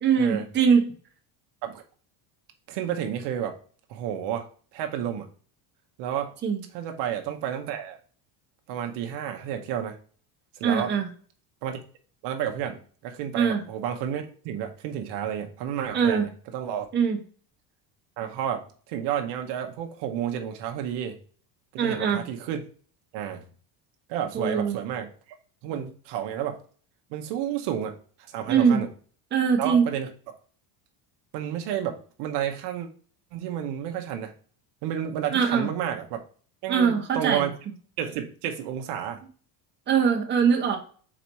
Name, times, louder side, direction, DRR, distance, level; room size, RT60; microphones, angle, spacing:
voice 1, 0.0-0.9 6.4-6.6 10.6-11.1 13.3-13.6 15.9-16.3 16.9-17.2 21.8-22.2 24.3-24.8 28.5-28.8 29.3-29.9 35.3-35.7 36.7-37.4 39.9-40.8, right 6 dB, 25° right, 1 dB, 1.0 m, -22 dB
voice 2, 2.7-3.6 3.9-4.5 4.7-5.3 6.0-6.3 6.7-8.0 8.7-10.0 10.5-10.9 11.6-11.8 12.2-16.9 18.2-21.2 21.7-22.6 23.1-23.4 24.1-25.1 25.6-26.6 27.1-27.9 28.3-28.9 29.6-30.4 31.3-32.9 33.3-34.3 34.8-36.2 36.6-37.5 38.0-39.2, right 9 dB, 65° right, 4 dB, 0.9 m, -31 dB
5.0 x 4.2 x 4.5 m, 0.43 s
cardioid pair, 160°, 45 cm